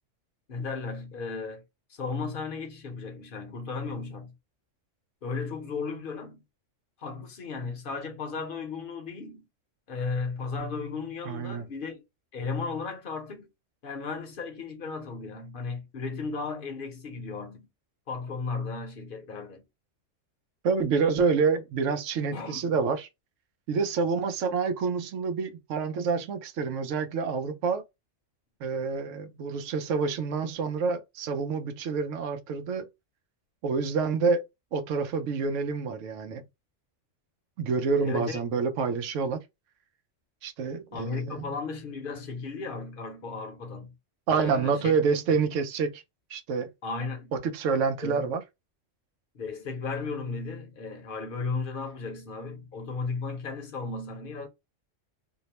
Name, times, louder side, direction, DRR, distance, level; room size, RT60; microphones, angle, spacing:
voice 1, 0.5-1.6 1.9-4.3 5.2-6.4 7.0-9.4 9.9-12.0 12.3-13.5 13.8-17.7 18.1-19.7 22.3-22.8 38.0-38.4 40.9-43.9 44.3-44.9 45.3-45.5 46.8-47.3 48.0-48.3 49.3-54.5, left 4 dB, 50° left, 0.8 m, -35 dB
voice 2, 11.3-11.7 20.6-23.1 23.7-27.8 28.6-32.9 33.6-36.4 37.6-39.4 40.4-41.5 44.3-46.0 46.3-46.7 47.3-48.4, right 5 dB, 80° right, 0.9 m, -27 dB
2.8 x 2.0 x 2.8 m
omnidirectional pair, 1.3 m